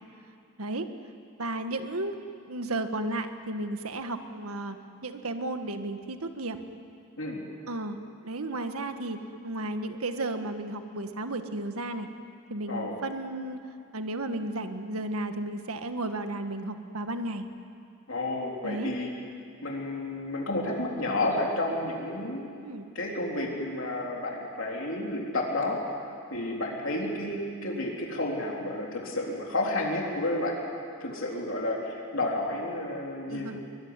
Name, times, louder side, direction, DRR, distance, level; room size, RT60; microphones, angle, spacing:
voice 1, 1.4-2.2 2.5-4.8 5.0-6.6 7.7-8.0 8.2-9.2 9.4-12.1 12.5-13.6 13.9-17.5 18.6-18.9 22.6-22.8 33.3-33.6, right 2 dB, 85° right, 7 dB, 1.7 m, -33 dB
voice 2, 12.7-13.0 18.1-19.1 19.6-22.5 23.0-25.8 26.3-30.6 31.0-33.6, left 2 dB, 65° left, -1 dB, 3.7 m, -31 dB
23.5 x 22.0 x 9.8 m, 2.4 s
head